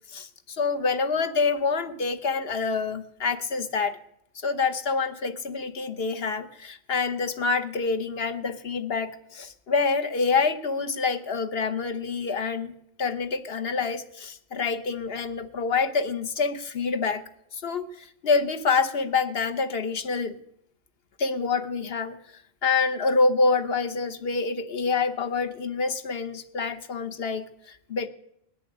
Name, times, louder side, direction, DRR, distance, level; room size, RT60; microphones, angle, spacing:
voice 1, 0.1-4.0 4.3-12.7 13.0-17.2 17.5-20.4 21.2-22.2 22.6-28.1, left 4 dB, 65° left, 8 dB, 1.2 m, -27 dB
19.5 x 7.0 x 9.8 m, 0.76 s
omnidirectional pair, 1.1 m